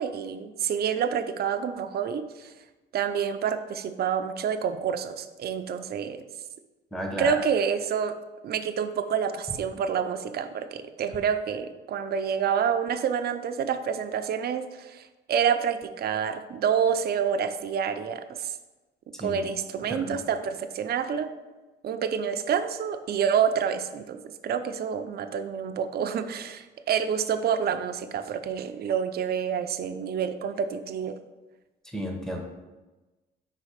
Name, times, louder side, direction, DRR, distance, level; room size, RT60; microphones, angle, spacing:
voice 1, 0.0-2.5 2.9-6.2 7.2-8.1 8.4-18.6 19.2-21.3 21.8-31.2, right 7 dB, 50° right, 8 dB, 0.5 m, -28 dB
voice 2, 6.9-7.4 19.2-19.4 19.8-20.1 31.9-32.4, equal, ahead, 2 dB, 1.0 m, -33 dB
5.4 x 4.1 x 4.9 m, 1.1 s
cardioid pair, 90°, 20 cm